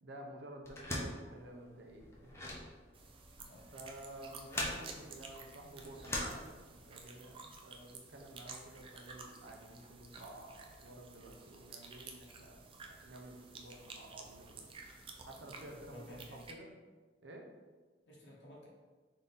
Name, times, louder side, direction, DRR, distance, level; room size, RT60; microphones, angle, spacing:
voice 1, 0.0-2.5 3.7-14.7 15.3-16.7 17.2-17.5, right 1 dB, 85° right, 1 dB, 0.7 m, -52 dB
sound 1, 0.6-7.0, left 1 dB, 15° left, 0.6 m, -42 dB
sound 2, 2.9-16.5, right 4 dB, 30° right, 0.4 m, -53 dB
voice 2, 15.4-16.5 18.1-18.7, equal, 70° left, -4 dB, 0.8 m, -53 dB
3.9 x 2.8 x 3.6 m, 1.4 s
head